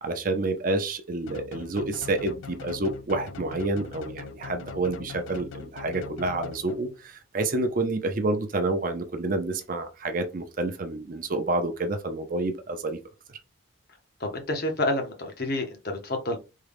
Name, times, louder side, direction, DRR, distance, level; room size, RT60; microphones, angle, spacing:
voice 1, 0.0-13.0 13.3-13.4, right 2 dB, 40° right, 0.5 m, -29 dB
sound 1, 1.3-7.0, left 5 dB, 70° left, 0.3 m, -41 dB
voice 2, 14.2-16.4, left 1 dB, 50° left, 0.8 m, -29 dB
3.6 x 2.2 x 3.4 m
head